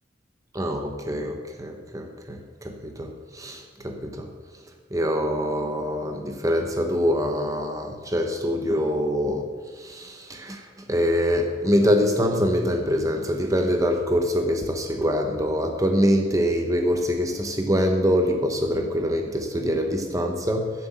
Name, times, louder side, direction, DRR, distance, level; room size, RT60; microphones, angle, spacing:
voice 1, 0.5-4.3 4.9-9.5 9.8-10.6 10.9-20.7, equal, 20° right, 4 dB, 0.9 m, -24 dB
10.5 x 7.7 x 7.2 m, 1.4 s
head